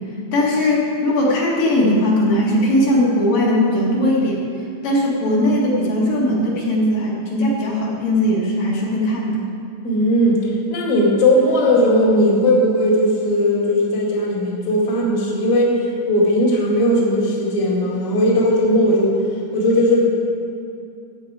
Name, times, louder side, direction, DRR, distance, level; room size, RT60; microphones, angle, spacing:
voice 1, 0.3-4.4 4.8-9.4, left 1 dB, 60° left, -5 dB, 3.3 m, -19 dB
voice 2, 9.8-15.8 16.0-19.2 19.5-20.0, equal, 30° left, -5 dB, 1.6 m, -17 dB
13.5 x 8.5 x 4.9 m, 2.5 s
omnidirectional pair, 4.5 m